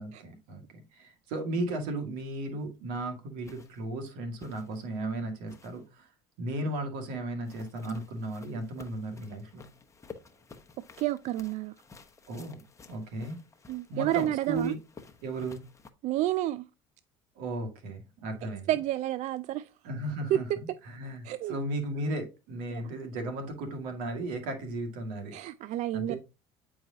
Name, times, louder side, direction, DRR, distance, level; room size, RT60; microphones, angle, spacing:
voice 1, 0.0-6.1 6.4-9.7 12.3-12.6 12.9-13.4 13.9-14.8 15.2-15.6 17.4-18.7 19.8-25.3 25.9-26.2, right 2 dB, 75° right, 2.0 m, -35 dB
sound 1, 3.4-3.8 4.4-4.9 5.5-5.9 7.4-15.9, left 5 dB, 20° left, 0.9 m, -52 dB
voice 2, 11.0-11.7 13.7-14.7 16.0-16.7 18.7-19.7 20.3-20.4 21.2-21.6 22.7-22.9 25.3-26.2, right 13 dB, 55° right, 0.4 m, -30 dB
8.9 x 4.7 x 2.8 m
supercardioid pair, 95°, 14 cm